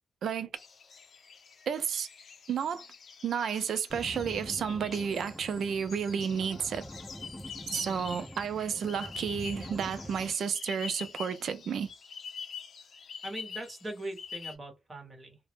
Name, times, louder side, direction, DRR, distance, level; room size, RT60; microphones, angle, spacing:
sound 1, 0.6-14.5, left 6 dB, 65° left, 0.5 m, -46 dB
voice 1, 1.7-2.1 2.5-2.9 3.2-6.8 7.7-11.9, right 7 dB, 80° right, 0.3 m, -31 dB
sound 2, 3.9-10.3, equal, ahead, 0.4 m, -45 dB
voice 2, 7.7-8.0 13.2-15.4, right 1 dB, 30° right, 1.0 m, -41 dB
2.0 x 2.0 x 3.0 m
cardioid pair, 85°, 0 cm